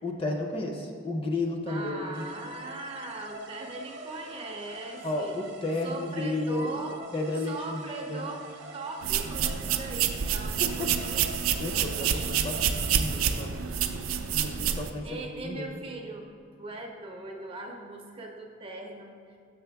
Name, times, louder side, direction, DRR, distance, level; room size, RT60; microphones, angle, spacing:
voice 1, 0.0-2.3 5.0-6.7 7.1-8.3 10.6-10.9 11.6-13.5 14.3-15.8, left 2 dB, 25° left, 2 dB, 0.5 m, -32 dB
voice 2, 1.7-5.3 5.8-7.0 7.5-11.2 15.0-16.3 16.6-19.4, right 2 dB, 25° right, 2 dB, 0.5 m, -40 dB
sound 1, 2.1-13.8, right 2 dB, 60° right, 0.8 m, -46 dB
sound 2, 9.0-14.9, right 8 dB, 80° right, 0.4 m, -28 dB
6.9 x 6.2 x 3.4 m, 2.4 s
head